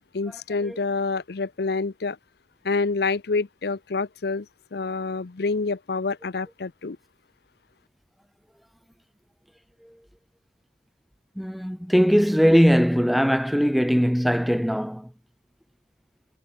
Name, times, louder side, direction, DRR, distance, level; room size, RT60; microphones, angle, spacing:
voice 1, 0.0-2.2 2.6-4.5 4.7-7.0, left 4 dB, 65° left, 0.7 m, -27 dB
voice 2, 11.4-15.1, equal, ahead, 0.4 m, -20 dB
head